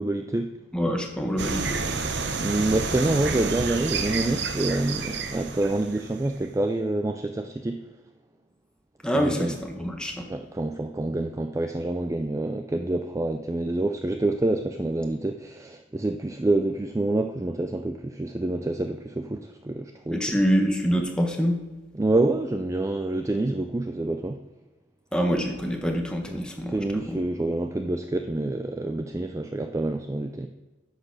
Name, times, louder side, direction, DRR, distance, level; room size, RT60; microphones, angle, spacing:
voice 1, 0.0-0.6 2.4-7.9 9.1-9.6 10.3-20.4 21.9-24.4 26.3-26.4 26.7-30.5, right 2 dB, 15° right, 7 dB, 0.3 m, -27 dB
voice 2, 0.7-1.9 9.0-10.3 20.1-21.6 25.1-27.2, equal, 5° left, 2 dB, 1.1 m, -26 dB
sound 1, 1.4-6.5, right 4 dB, 55° right, 0.8 m, -30 dB
10.0 x 6.6 x 6.0 m, 1.2 s
head